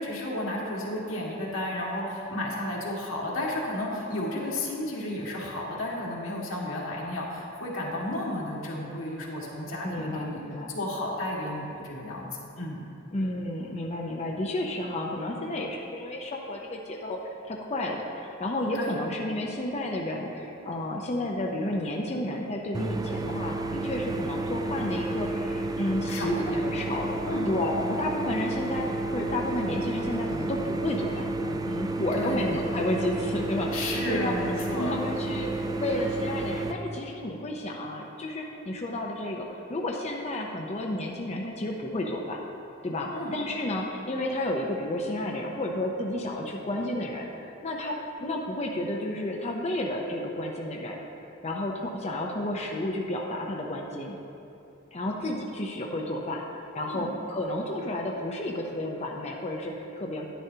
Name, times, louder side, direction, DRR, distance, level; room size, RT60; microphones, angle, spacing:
voice 1, 0.0-10.4 10.7-12.3 12.6-12.8 18.7-18.9 26.1-26.4 27.3-27.5 32.1-32.6 33.7-34.9 43.1-43.4 56.8-57.1, left 1 dB, 90° left, -3 dB, 1.8 m, -32 dB
voice 2, 9.8-10.8 13.1-17.2 17.5-27.2 27.4-34.3 34.7-42.4 42.8-47.2 47.6-51.0 51.4-54.2 54.9-56.4 56.7-60.3, left 1 dB, 35° left, 0 dB, 0.6 m, -31 dB
sound 1, 22.7-36.7, right 2 dB, 20° right, 0.3 m, -31 dB
10.5 x 10.0 x 2.8 m, 2.9 s
head